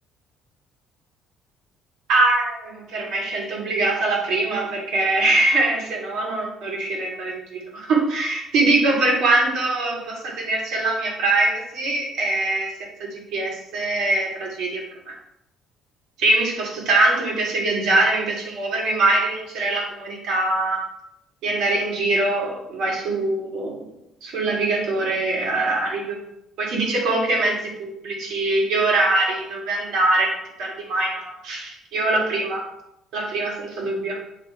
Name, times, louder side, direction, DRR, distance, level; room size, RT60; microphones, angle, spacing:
voice 1, 2.1-12.7 13.0-15.1 16.2-20.8 21.4-23.8 24.2-26.2 26.6-32.6 33.1-34.2, right 2 dB, 70° right, -3 dB, 2.3 m, -23 dB
7.3 x 3.2 x 4.4 m, 0.81 s
cardioid pair, 140°, 0 cm